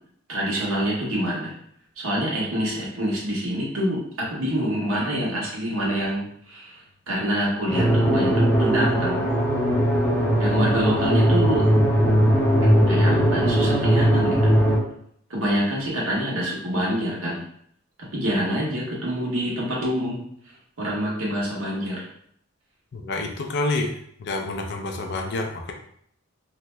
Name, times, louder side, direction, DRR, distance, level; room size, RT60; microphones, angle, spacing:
voice 1, 0.3-1.5 2.0-6.8 7.1-9.2 10.4-11.7 12.9-14.5 15.3-17.4 18.1-20.2 20.8-22.0, equal, 85° right, -4 dB, 1.1 m, -26 dB
sound 1, 7.7-14.8, equal, 10° left, 0.6 m, -19 dB
voice 2, 22.9-25.7, left 2 dB, 55° left, 3 dB, 0.4 m, -28 dB
2.7 x 2.1 x 3.3 m, 0.67 s
head